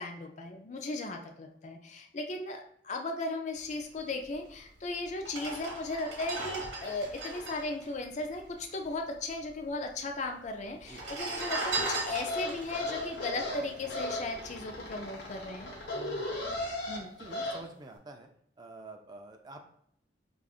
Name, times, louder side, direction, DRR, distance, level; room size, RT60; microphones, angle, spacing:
voice 1, 0.0-15.7 16.9-17.2, left 2 dB, 40° left, 3 dB, 0.4 m, -37 dB
sound 1, 4.5-4.6 5.2-8.9 9.1-9.2 9.4-10.1 10.8-14.3 14.7-14.9, right 2 dB, 85° right, 1.0 m, -37 dB
sound 2, 12.1-17.6, left 1 dB, 70° left, 0.9 m, -37 dB
voice 2, 15.9-16.7 17.2-18.3 18.6-19.7, right 2 dB, 20° right, 4 dB, 0.4 m, -48 dB
4.9 x 2.4 x 2.3 m, 0.67 s
head